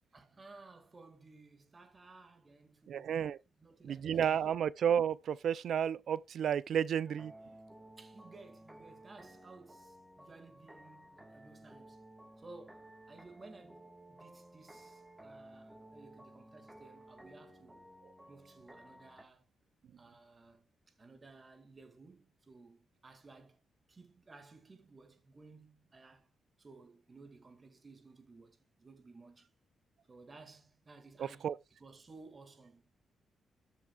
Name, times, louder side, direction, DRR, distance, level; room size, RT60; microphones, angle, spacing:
voice 1, 0.1-4.7 8.0-12.1 12.4-17.9 18.3-19.5 20.0-23.6 23.9-26.3 26.6-29.5 30.1-33.0, right 3 dB, 25° right, 1.9 m, -57 dB
voice 2, 2.9-3.4 3.8-7.3 31.4-31.5, right 8 dB, 70° right, 0.4 m, -31 dB
sound 1, 7.1-19.2, right 1 dB, 10° right, 1.5 m, -56 dB
13.0 x 7.0 x 2.3 m
cardioid pair, 130°, 0 cm